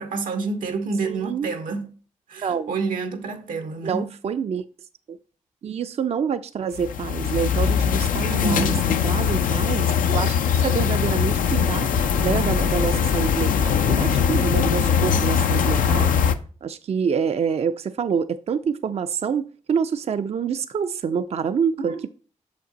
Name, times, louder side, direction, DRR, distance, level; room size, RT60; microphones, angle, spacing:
voice 1, 0.0-1.9 2.3-4.1 8.3-9.0 21.8-22.1, right 4 dB, 90° right, 0.9 m, -28 dB
voice 2, 1.1-1.5 2.4-2.7 3.8-4.6 5.1-5.2 5.6-8.6 9.0-11.9 12.2-16.1 16.6-21.9, right 6 dB, 50° right, 0.4 m, -26 dB
sound 1, 6.8-16.3, left 7 dB, 85° left, 0.5 m, -21 dB
6.4 x 5.2 x 3.9 m
cardioid pair, 60°, 14 cm